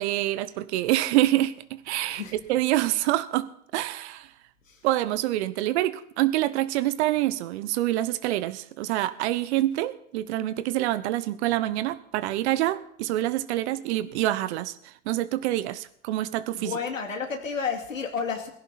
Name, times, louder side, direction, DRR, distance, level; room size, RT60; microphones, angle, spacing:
voice 1, 0.0-2.2 2.5-3.5 3.7-4.3 4.8-16.7, right 15 dB, 60° right, 15 dB, 1.0 m, -26 dB
voice 2, 2.0-2.4 4.7-4.8 16.5-18.5, left 6 dB, 85° left, 3 dB, 2.7 m, -31 dB
18.0 x 16.0 x 4.3 m, 0.67 s
figure-of-eight pair, 80°, 38 cm